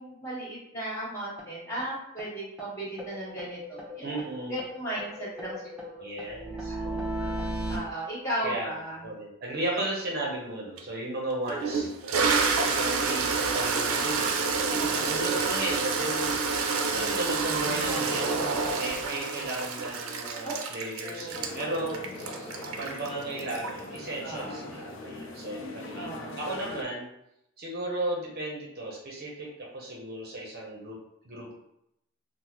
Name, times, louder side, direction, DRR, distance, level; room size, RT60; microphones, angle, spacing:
voice 1, 0.0-4.2 4.5-5.9 6.5-6.8 7.7-9.0 14.6-15.2 20.4-20.5 21.0-21.3 24.2-24.7 25.9-26.4, right 1 dB, 15° left, -8 dB, 1.4 m, -36 dB
sound 1, 1.4-1.5 1.8-1.9 2.2-2.3 2.6-2.7 3.0-4.3 4.6-7.8, right 1 dB, 5° right, 0.5 m, -36 dB
voice 2, 4.0-4.6 6.0-7.3 8.4-8.7 9.0-11.9 12.8-16.3 16.6-18.5 18.7-22.5 22.8-26.1 26.4-27.1 27.6-31.0 31.2-31.5, right 1 dB, 50° right, -3 dB, 0.7 m, -35 dB
Toilet flush, 10.8-10.9 11.5-24.0, right 4 dB, 90° right, 0.4 m, -28 dB
sound 2, 21.3-26.8, left 2 dB, 65° left, 0.5 m, -41 dB
3.5 x 2.1 x 2.9 m, 0.81 s
head